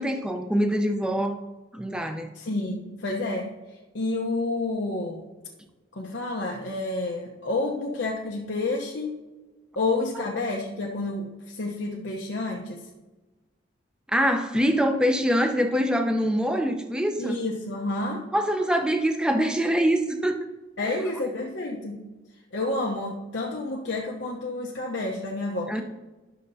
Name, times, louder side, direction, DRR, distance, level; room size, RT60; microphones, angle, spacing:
voice 1, 0.0-1.4 1.7-2.3 14.1-17.4 18.3-20.4 20.8-21.0 25.7-25.8, equal, 5° right, 5 dB, 0.6 m, -24 dB
voice 2, 2.3-5.3 5.9-9.2 9.8-12.9 17.2-18.3 20.8-22.0 22.5-25.8, left 2 dB, 85° left, -2 dB, 0.9 m, -30 dB
11.5 x 6.6 x 2.7 m, 1.2 s
head